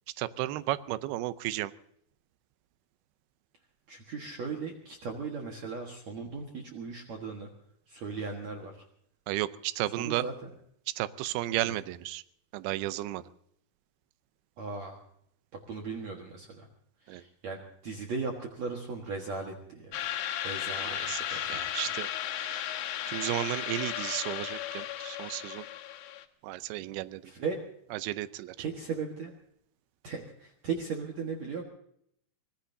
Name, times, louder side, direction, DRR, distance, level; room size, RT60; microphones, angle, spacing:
voice 1, 0.2-1.7 9.3-10.2 11.0-12.2 12.5-13.2 17.1-17.2 20.8-22.7 23.1-25.7 26.4-27.2 27.9-28.6, right 15 dB, 80° right, 13 dB, 2.7 m, -34 dB
voice 2, 3.9-7.5 7.9-8.7 10.0-10.3 11.7-11.8 14.6-15.0 15.7-16.7 17.0-19.9 20.4-21.6 27.2-27.6 28.6-29.3 30.0-31.6, right 4 dB, 55° right, 1 dB, 2.4 m, -37 dB
sound 1, 19.9-26.2, left 11 dB, 85° left, 3.2 m, -35 dB
25.0 x 19.5 x 2.7 m, 0.70 s
omnidirectional pair, 4.5 m